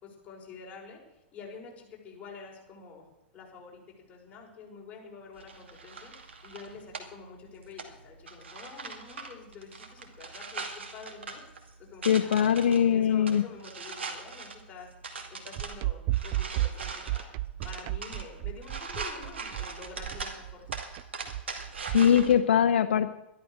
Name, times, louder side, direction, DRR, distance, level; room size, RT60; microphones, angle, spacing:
voice 1, 0.0-1.0 1.3-3.1 3.3-3.8 4.1-6.1 6.4-11.4 11.9-14.9 15.3-17.4 17.6-20.7, left 5 dB, 25° left, -3 dB, 5.8 m, -47 dB
sound 1, 5.4-22.3, right 4 dB, 85° right, 2.3 m, -42 dB
voice 2, 12.0-13.4 21.8-23.1, left 8 dB, 80° left, 9 dB, 0.7 m, -22 dB
sound 2, 15.6-22.4, right 16 dB, 45° right, 0.4 m, -33 dB
13.0 x 12.0 x 6.5 m, 0.91 s
hypercardioid pair, 110°, 6 cm